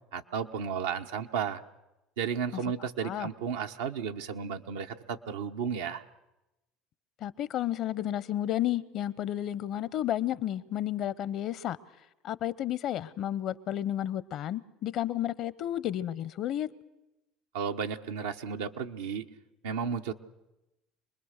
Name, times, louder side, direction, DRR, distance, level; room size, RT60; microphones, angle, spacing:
voice 1, 0.1-1.6 2.2-6.0 17.5-19.3 19.6-20.1, right 7 dB, 85° right, 1.0 m, -33 dB
voice 2, 7.2-11.8 12.2-16.7, left 12 dB, 60° left, 0.8 m, -32 dB
25.5 x 20.5 x 6.6 m
hypercardioid pair, 80°, 0 cm